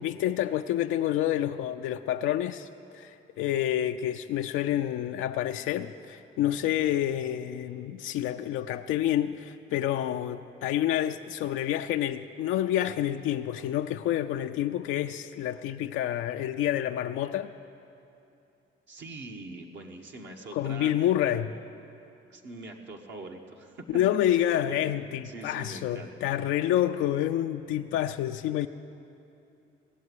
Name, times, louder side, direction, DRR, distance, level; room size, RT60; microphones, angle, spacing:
voice 1, 0.0-2.7 2.9-17.5 20.5-21.5 23.9-28.7, left 12 dB, 90° left, 6 dB, 0.4 m, -28 dB
voice 2, 18.9-20.9 21.5-21.6 22.3-23.9 24.3-24.8 25.2-26.1, right 2 dB, 65° right, 1 dB, 1.2 m, -43 dB
17.0 x 7.2 x 9.6 m, 2.7 s
cardioid pair, 90°, 20 cm